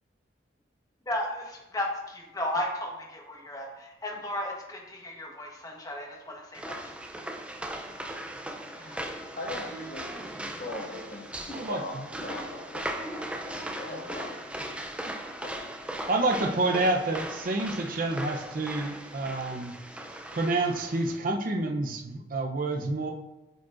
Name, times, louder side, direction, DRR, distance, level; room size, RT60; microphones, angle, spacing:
voice 1, 1.1-3.7 4.0-6.8, left 1 dB, 20° left, 0 dB, 1.0 m, -34 dB
sound 1, 6.5-21.2, right 1 dB, 5° right, 0.4 m, -38 dB
voice 2, 8.8-14.2, left 1 dB, 50° left, -3 dB, 1.6 m, -41 dB
voice 3, 16.1-19.7 20.3-23.1, right 2 dB, 50° right, 2 dB, 0.6 m, -28 dB
7.8 x 4.9 x 2.5 m, 1.0 s
head